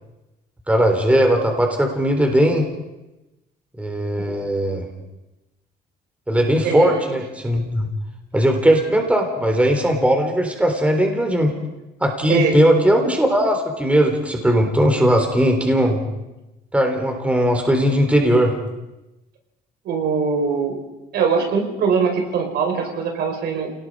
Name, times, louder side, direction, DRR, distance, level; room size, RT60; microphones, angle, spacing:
voice 1, 0.7-2.7 3.8-4.9 6.3-7.9 8.3-11.5 12.0-16.0 16.7-18.6, equal, 10° right, 3 dB, 3.8 m, -18 dB
voice 2, 6.6-7.0 12.3-12.6 19.8-20.7 21.1-23.7, right 5 dB, 70° right, 3 dB, 4.8 m, -22 dB
28.0 x 19.0 x 4.9 m, 1.0 s
cardioid pair, 110°, 17 cm